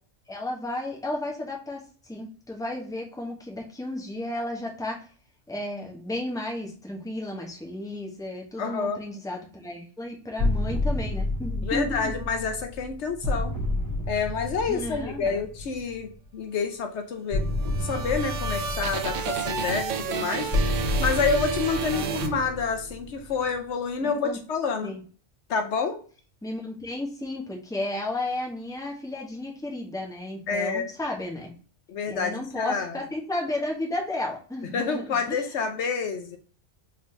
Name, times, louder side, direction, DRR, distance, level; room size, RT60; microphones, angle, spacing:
voice 1, 0.3-5.0 5.5-12.2 14.7-15.4 20.2-20.6 21.9-22.4 24.0-24.4 24.8-25.0 26.4-31.5 32.1-35.4, left 1 dB, 5° left, 0 dB, 1.0 m, -33 dB
voice 2, 8.6-9.0 11.6-13.6 14.1-17.4 17.8-20.5 21.0-24.9 25.5-26.0 30.5-30.9 31.9-33.0 34.7-36.4, left 5 dB, 70° left, 6 dB, 1.0 m, -28 dB
sound 1, 10.4-16.1 17.3-23.6, left 2 dB, 30° right, 2.0 m, -30 dB
sound 2, 17.4-23.0, right 6 dB, 85° right, 1.0 m, -31 dB
4.0 x 3.9 x 3.2 m, 0.40 s
omnidirectional pair, 1.2 m